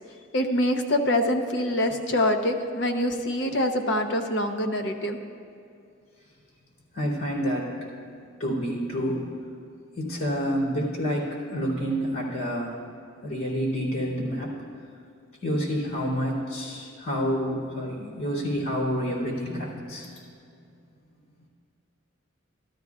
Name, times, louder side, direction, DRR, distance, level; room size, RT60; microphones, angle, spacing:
voice 1, 0.3-5.2, left 1 dB, 55° left, 5 dB, 0.7 m, -25 dB
voice 2, 6.9-7.8 8.4-9.2 9.9-12.8 13.2-14.6 15.4-20.2, equal, 80° left, -8 dB, 2.9 m, -28 dB
13.0 x 13.0 x 2.4 m, 2.4 s
head